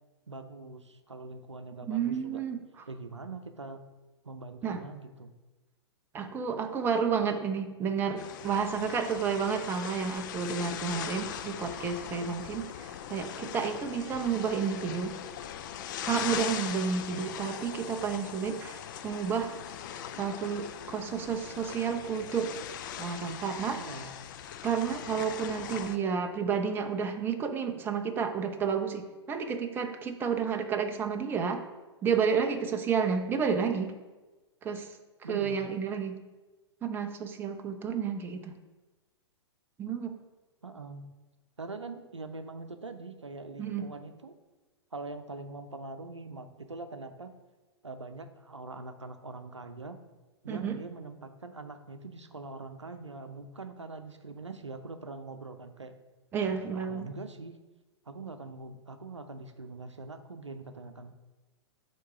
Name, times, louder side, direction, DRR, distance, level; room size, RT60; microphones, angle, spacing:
voice 1, 0.3-2.4 2.9-3.8 4.2-5.3 23.8-24.2 35.2-35.6 40.6-41.1 41.6-44.4 44.9-47.3 47.8-50.0 50.4-55.9 56.7-57.6 58.1-61.2, right 3 dB, 80° right, 8 dB, 0.6 m, -43 dB
voice 2, 1.8-2.6 4.6-4.8 6.1-15.1 16.0-19.5 20.2-22.5 23.0-23.8 24.6-31.6 32.0-34.0 34.6-35.0 35.3-36.2 36.8-38.6 39.8-40.2 43.6-43.9 50.5-50.8 56.3-57.1, right 6 dB, 15° right, 6 dB, 0.6 m, -31 dB
sound 1, 8.2-26.0, left 9 dB, 45° left, 0.5 m, -40 dB
9.1 x 3.1 x 5.7 m, 1.2 s
figure-of-eight pair, 110°, 15 cm